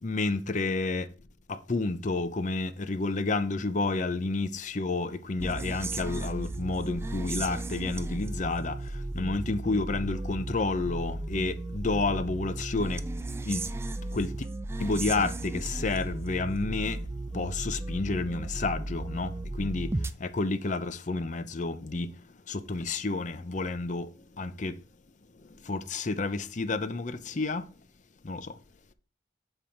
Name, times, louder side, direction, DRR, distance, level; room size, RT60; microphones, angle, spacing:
voice 1, 0.0-1.1 1.5-13.1 13.5-13.7 14.1-14.5 14.8-24.8 25.4-27.7 28.2-28.6, left 3 dB, 40° left, 0.6 m, -30 dB
sound 1, 5.4-20.1, right 2 dB, 15° right, 0.3 m, -35 dB
6.8 x 5.5 x 4.4 m
head